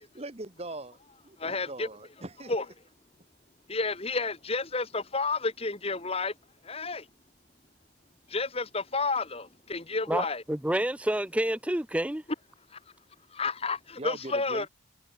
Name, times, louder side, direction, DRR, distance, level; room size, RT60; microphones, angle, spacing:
voice 1, 0.1-2.5 14.0-14.7, right 2 dB, 30° right, 1.3 m, -41 dB
voice 2, 1.4-1.9 2.5-2.7 3.7-6.4 6.6-7.1 8.3-10.4 12.7-12.8 13.3-14.7, left 3 dB, 30° left, 1.7 m, -31 dB
voice 3, 10.1-12.2, right 1 dB, 5° right, 0.5 m, -28 dB
head